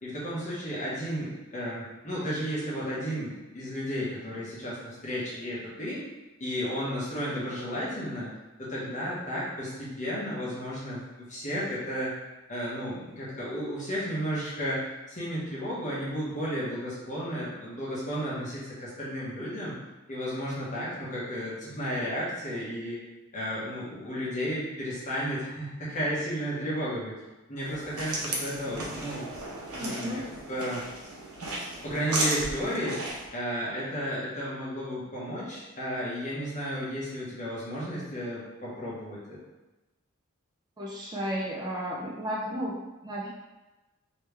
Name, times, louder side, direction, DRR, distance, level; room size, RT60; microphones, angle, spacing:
voice 1, 0.0-6.0 6.4-8.3 8.6-12.1 12.5-19.7 20.1-23.0 23.3-27.1 27.5-29.2 29.7-30.2 30.5-30.8 31.8-33.0 33.3-39.4, equal, 35° left, -7 dB, 1.2 m, -33 dB
sound 1, 27.6-33.3, right 2 dB, 85° right, 0.9 m, -35 dB
voice 2, 29.8-30.2 40.8-43.3, equal, 20° right, -4 dB, 0.5 m, -33 dB
3.3 x 3.0 x 3.3 m, 1.1 s
head